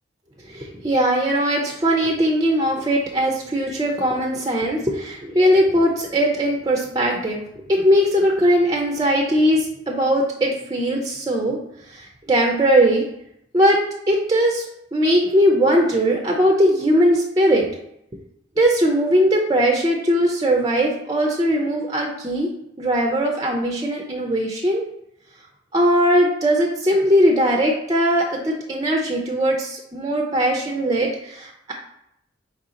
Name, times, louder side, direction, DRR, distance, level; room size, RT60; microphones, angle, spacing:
voice 1, 0.5-11.6 11.9-13.1 13.5-13.8 14.1-14.7 14.9-17.7 18.6-22.5 22.8-24.8 25.7-31.7, equal, 20° right, 0 dB, 0.5 m, -19 dB
4.7 x 2.8 x 3.7 m, 0.76 s
head